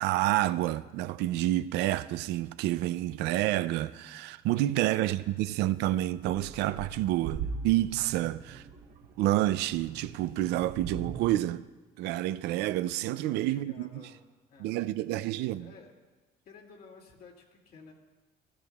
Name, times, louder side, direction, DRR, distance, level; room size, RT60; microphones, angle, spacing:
voice 1, 0.0-8.6 9.2-11.6 12.0-14.1 14.6-15.7, right 15 dB, 90° right, 0.4 m, -29 dB
sound 1, 5.2-5.3 5.8-11.4, right 5 dB, 60° right, 1.0 m, -41 dB
voice 2, 13.5-14.2 14.5-15.9 16.4-17.9, left 4 dB, 65° left, 2.4 m, -53 dB
16.0 x 14.5 x 2.4 m
cardioid pair, 110°, 17 cm